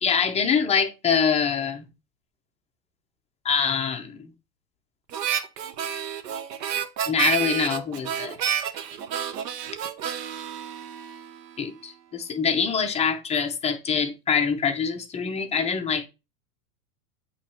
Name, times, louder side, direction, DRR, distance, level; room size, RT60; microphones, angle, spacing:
voice 1, 0.0-1.9 3.4-4.3 7.1-8.4 11.6-16.1, left 6 dB, 15° left, 0.6 m, -24 dB
Harmonica, 5.1-11.6, right 9 dB, 85° right, 1.0 m, -30 dB
8.2 x 3.2 x 4.3 m
supercardioid pair, 135°, 48 cm